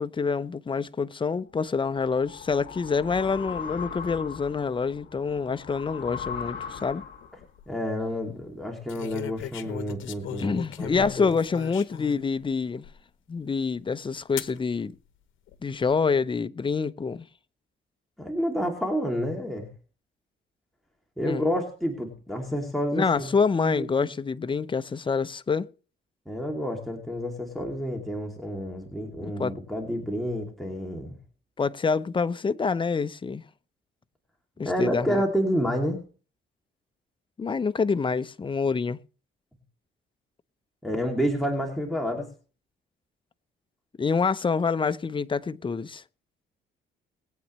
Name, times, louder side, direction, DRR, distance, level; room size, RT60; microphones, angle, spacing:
voice 1, 0.0-7.0 10.4-12.8 13.3-14.9 15.6-17.2 21.2-21.4 22.9-25.7 29.2-29.5 31.6-33.4 34.6-35.2 37.4-39.0 44.0-46.0, left 5 dB, 25° left, 0.6 m, -26 dB
sound 1, 1.6-7.4, left 7 dB, 65° left, 2.0 m, -39 dB
sound 2, 7.2-7.6 8.9-12.2 12.8-12.9 14.4-14.6 15.5-16.0, left 10 dB, 80° left, 0.9 m, -38 dB
voice 2, 7.7-10.9 11.2-11.3 18.2-19.7 21.2-23.3 23.6-24.1 26.3-31.2 34.6-36.0 40.8-42.3, equal, ahead, 2.6 m, -29 dB
21.0 x 8.5 x 3.1 m
cardioid pair, 90°, 20 cm